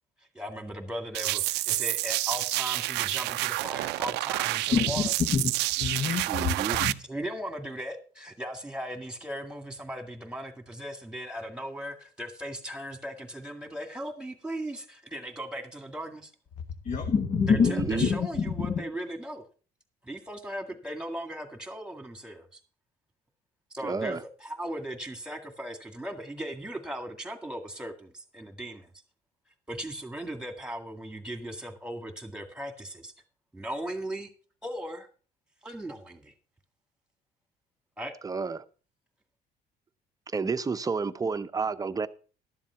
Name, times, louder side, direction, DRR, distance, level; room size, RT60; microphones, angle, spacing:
voice 1, 0.3-5.1 7.0-16.3 17.5-19.4 20.0-22.6 23.7-28.9 29.7-33.1 33.5-34.3 34.6-35.1 35.6-36.3 38.0-38.1, right 1 dB, 5° right, 1.9 m, -38 dB
sound 1, 1.1-6.9, right 19 dB, 90° right, 0.5 m, -29 dB
voice 2, 4.7-5.5 5.8-6.9 16.8-17.7 18.0-18.2 18.6-18.8, left 5 dB, 45° left, 1.2 m, -26 dB
voice 3, 6.3-6.8 17.5-18.1 23.8-24.2 38.2-38.6 40.3-42.1, right 4 dB, 20° right, 0.7 m, -30 dB
12.0 x 7.3 x 5.7 m
cardioid pair, 110°, 17 cm